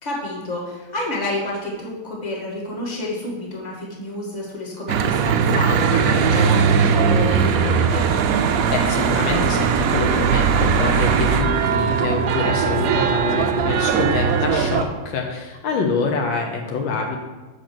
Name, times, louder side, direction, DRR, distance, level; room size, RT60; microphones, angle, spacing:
voice 1, 0.0-8.1, left 2 dB, 20° left, -3 dB, 1.7 m, -29 dB
Church bell / Traffic noise roadway noise, 4.9-14.8, right 6 dB, 80° right, 0.8 m, -19 dB
voice 2, 8.7-17.2, left 4 dB, 75° left, 2 dB, 1.6 m, -26 dB
7.2 x 5.1 x 6.0 m, 1.2 s
omnidirectional pair, 2.2 m